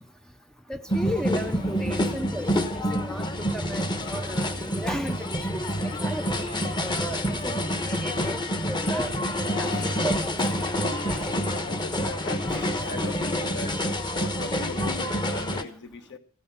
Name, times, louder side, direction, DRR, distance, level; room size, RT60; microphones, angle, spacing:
voice 1, 0.7-7.6 7.9-8.4 8.7-9.1 9.6-10.3 11.1-11.3 12.5-12.8, equal, 5° left, 0.5 m, -35 dB
sound 1, 0.9-15.6, equal, 20° left, 1.2 m, -27 dB
voice 2, 11.6-16.2, left 3 dB, 55° left, 1.4 m, -39 dB
15.5 x 9.8 x 5.7 m
head